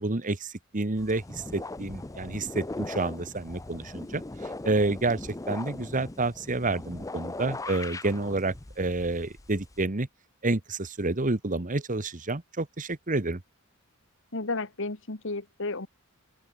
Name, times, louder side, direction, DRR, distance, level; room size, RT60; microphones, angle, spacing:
voice 1, 0.0-10.1 10.4-13.4, right 2 dB, 35° right, 1.3 m, -29 dB
sound 1, 1.0-9.8, left 2 dB, 15° left, 0.6 m, -40 dB
voice 2, 14.3-15.9, left 3 dB, 60° left, 1.8 m, -32 dB
open air
head